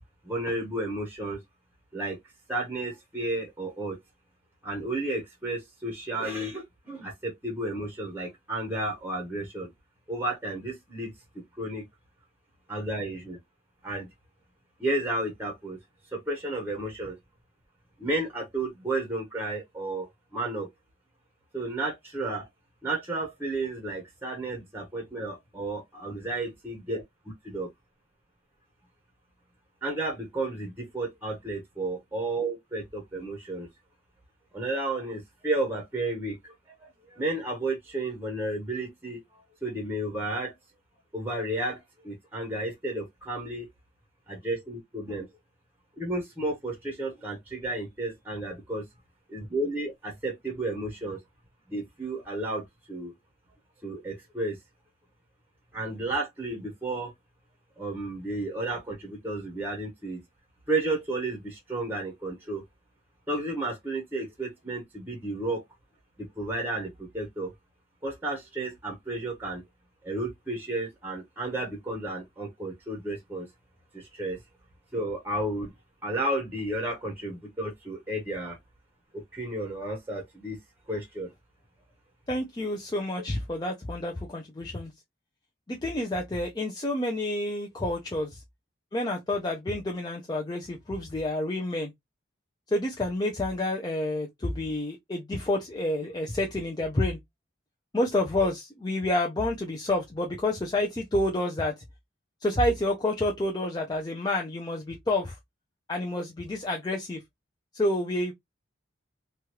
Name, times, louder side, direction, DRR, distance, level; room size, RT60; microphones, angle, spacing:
voice 1, 0.2-1.4 1.9-2.2 2.5-4.0 4.6-9.7 10.1-11.8 12.7-13.4 13.8-14.1 14.8-15.8 16.1-17.2 18.0-20.1 20.3-20.7 21.5-22.5 22.8-27.0 27.4-27.7 29.8-33.7 34.5-36.5 36.8-40.5 41.1-41.8 42.0-43.7 44.3-45.3 46.0-48.8 49.3-51.2 51.7-53.1 53.8-54.6 55.7-57.1 57.8-60.2 60.7-62.6 63.3-65.6 66.2-67.5 68.0-69.6 70.0-73.5 73.9-74.4 74.9-75.7 76.0-78.6 79.1-80.6 80.9-81.3, right 2 dB, 10° right, 0.8 m, -32 dB
voice 2, 82.3-84.9 85.7-88.4 88.9-91.9 92.7-97.2 97.9-101.7 102.4-105.4 105.9-107.2 107.7-108.3, left 1 dB, 20° left, 0.4 m, -29 dB
3.0 x 2.3 x 2.9 m
head